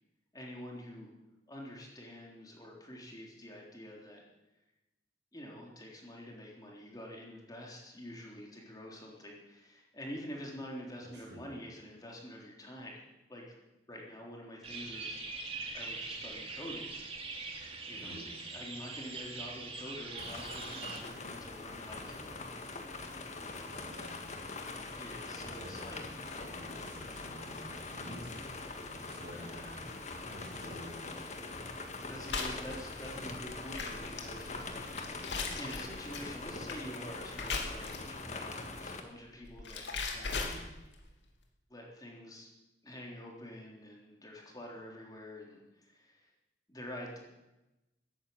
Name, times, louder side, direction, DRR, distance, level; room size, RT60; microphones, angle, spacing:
voice 1, 0.3-1.1 1.5-4.2 5.3-13.0 13.3-13.4 13.9-16.9 17.8-18.2 18.5-22.4 24.9-26.1 29.3-29.7 32.1-35.1 35.5-40.5 41.7-42.5 42.8-46.3 46.7-47.2, equal, 20° left, -1 dB, 3.6 m, -47 dB
voice 2, 11.1-11.4 17.9-18.3 23.6-24.3 25.5-30.0 30.3-31.1 35.2-35.5 40.4-40.7, equal, 70° right, -1 dB, 6.6 m, -50 dB
sound 1, 14.6-21.0, right 3 dB, 35° right, 2.4 m, -42 dB
sound 2, 20.2-39.0, left 3 dB, 40° left, 1.8 m, -43 dB
sound 3, 32.3-38.2 39.3-41.1, left 4 dB, 80° left, 2.7 m, -39 dB
15.0 x 10.0 x 9.3 m, 0.99 s
head